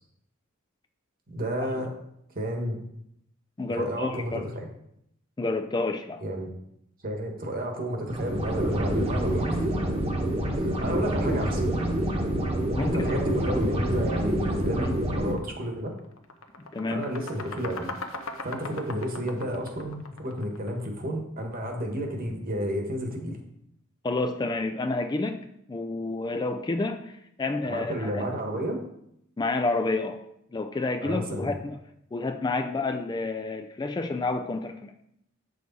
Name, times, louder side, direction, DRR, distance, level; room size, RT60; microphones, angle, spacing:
voice 1, 1.3-1.9 2.3-2.8 3.7-4.7 6.2-6.5 7.0-9.6 10.5-11.6 12.8-15.9 16.9-17.9 18.4-23.4 27.6-28.8 31.0-31.5, equal, 45° right, 3 dB, 1.5 m, -31 dB
voice 2, 3.6-4.5 5.4-6.2 10.8-11.0 12.7-13.2 14.8-14.9 16.7-17.0 24.0-25.4 25.7-27.1 27.4-28.2 29.4-30.2 30.5-31.8 32.1-34.9, left 3 dB, 20° left, 8 dB, 0.4 m, -29 dB
sound 1, 8.1-15.3, right 1 dB, 30° right, 1.2 m, -27 dB
sound 2, 15.4-15.5 15.9-20.8, left 3 dB, 80° left, 0.9 m, -39 dB
8.0 x 6.5 x 4.1 m, 0.76 s
head